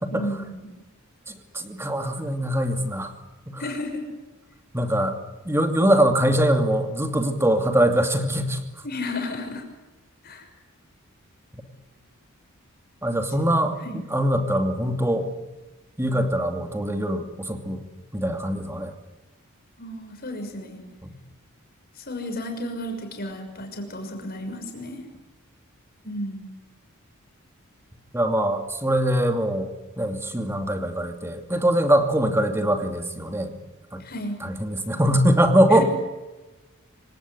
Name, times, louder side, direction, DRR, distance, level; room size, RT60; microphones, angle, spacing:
voice 1, 0.1-0.8 3.6-4.0 8.8-9.6 10.2-10.5 13.4-13.5 13.8-14.0 19.8-20.8 22.0-25.0 26.0-26.6 34.0-34.4 35.7-35.8, left 1 dB, 45° left, 4 dB, 6.3 m, -33 dB
voice 2, 1.3-3.1 3.5-3.6 4.7-5.2 5.4-8.6 13.0-15.3 16.0-17.8 18.1-18.9 28.1-33.5 33.9-34.0 34.4-35.8, right 1 dB, 10° right, 6 dB, 2.5 m, -22 dB
26.5 x 17.5 x 9.8 m, 1.1 s
head